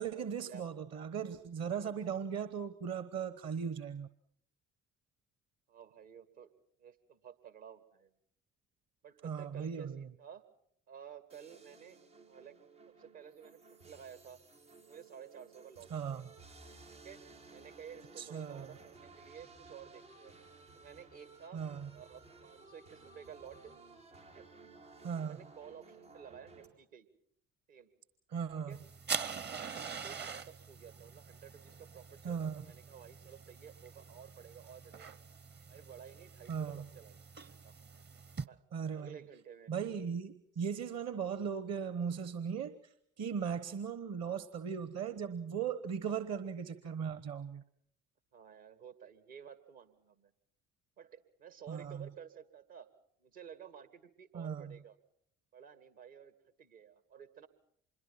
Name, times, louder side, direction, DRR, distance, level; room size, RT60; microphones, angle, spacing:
voice 1, 0.0-4.1 9.2-10.1 15.9-16.3 18.2-18.7 21.5-21.9 25.0-25.4 28.3-28.8 32.2-32.6 36.5-36.9 38.7-39.2 39.7-47.6 51.7-52.1 54.3-54.8, right 7 dB, 45° right, 13 dB, 1.2 m, -38 dB
voice 2, 5.7-6.5 6.8-8.1 9.0-10.4 10.9-12.0 12.3-12.6 12.9-14.4 14.8-16.3 16.9-17.2 17.5-20.3 20.7-21.6 21.9-23.7 24.3-24.5 25.2-27.1 27.7-27.9 28.7-28.8 29.6-35.1 35.7-37.1 37.5-37.8 38.5-38.6 38.9-39.7 48.3-50.3 51.0-52.9 53.2-55.0 55.5-57.5, right 8 dB, 65° right, 11 dB, 2.3 m, -53 dB
sound 1, 11.3-26.7, right 3 dB, 90° right, 3.9 m, -57 dB
sound 2, 28.7-38.4, right 6 dB, 30° right, 0.8 m, -44 dB
26.0 x 22.0 x 5.8 m, 0.70 s
figure-of-eight pair, 45°, 36 cm